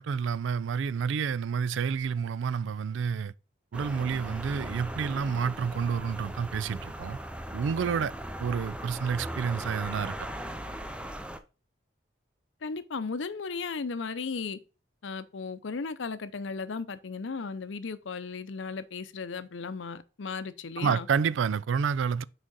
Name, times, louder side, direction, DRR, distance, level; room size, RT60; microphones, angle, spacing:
voice 1, 0.0-3.3 3.7-7.2 7.5-8.1 8.4-10.3 20.8-22.2, right 6 dB, 85° right, 0.4 m, -29 dB
sound 1, 3.7-11.4, right 1 dB, 5° right, 0.5 m, -39 dB
voice 2, 12.6-14.6 15.0-21.1, left 4 dB, 85° left, 0.6 m, -35 dB
6.2 x 4.9 x 3.9 m
head